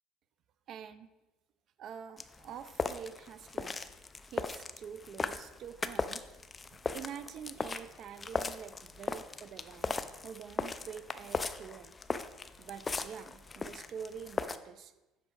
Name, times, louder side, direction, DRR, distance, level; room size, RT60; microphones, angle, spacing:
voice 1, 0.7-1.1 1.8-3.9 4.3-6.2 6.9-12.0 12.6-14.9, right 8 dB, 45° right, 12 dB, 0.5 m, -46 dB
sound 1, 2.2-14.6, left 4 dB, 15° left, 0.4 m, -38 dB
8.1 x 5.9 x 4.5 m, 1.0 s
cardioid pair, 145°, 0 cm